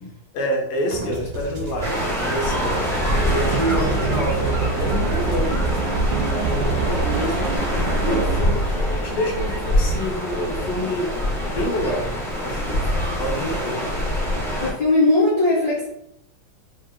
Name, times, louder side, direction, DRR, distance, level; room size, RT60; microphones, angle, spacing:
voice 1, 0.0-2.9 3.2-4.5 4.8-5.6 6.5-7.5 8.0-12.1 12.4-13.8, equal, 85° left, -1 dB, 2.0 m, -27 dB
sound 1, 0.9-7.6, right 2 dB, 40° right, 1.5 m, -32 dB
sound 2, 1.8-14.7, equal, 5° left, 0.6 m, -24 dB
sound 3, 3.1-8.6, right 5 dB, 75° right, 1.1 m, -26 dB
voice 2, 14.6-15.9, left 2 dB, 50° left, -7 dB, 1.3 m, -19 dB
5.4 x 3.8 x 2.2 m, 0.79 s
omnidirectional pair, 2.4 m